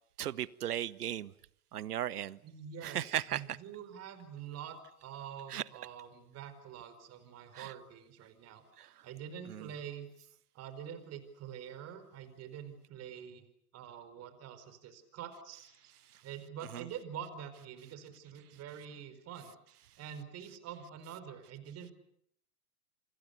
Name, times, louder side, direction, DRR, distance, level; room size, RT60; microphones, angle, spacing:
voice 1, 0.2-1.3 1.7-2.4 2.8-3.6 5.5-5.6 7.5-7.7 8.8-9.0 9.5-9.7 16.1-16.2 16.7-16.9, right 11 dB, 85° right, 20 dB, 1.1 m, -37 dB
voice 2, 2.4-8.6 9.0-10.1 10.5-13.4 13.7-15.7 16.2-19.6 20.0-21.9, right 8 dB, 35° right, 10 dB, 4.9 m, -46 dB
28.5 x 26.0 x 6.8 m, 0.67 s
hypercardioid pair, 115°, 45 cm